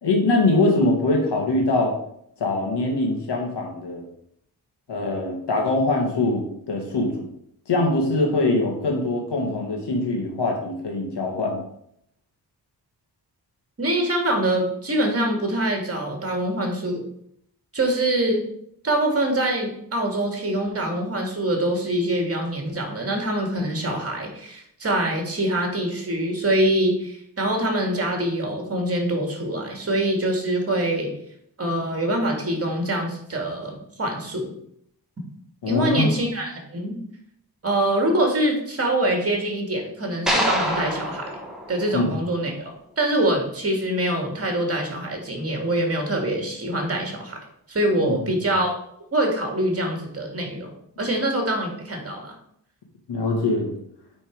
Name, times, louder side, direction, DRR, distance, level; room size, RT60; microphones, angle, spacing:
voice 1, 0.0-1.9 2.4-4.0 4.9-7.3 7.7-11.6 35.6-36.1 41.9-42.1 48.0-48.2 53.1-53.7, left 2 dB, 85° left, 1 dB, 2.1 m, -23 dB
voice 2, 13.8-17.0 17.7-18.5 18.8-31.1 31.6-34.5 35.7-37.0 37.6-41.3 41.7-42.7 43.0-47.4 47.7-48.7 49.1-52.3, right 1 dB, 35° right, 2 dB, 2.2 m, -24 dB
sound 1, 40.3-42.6, equal, ahead, 1.6 m, -26 dB
9.0 x 4.3 x 4.7 m, 0.71 s
wide cardioid pair, 120°, 40 cm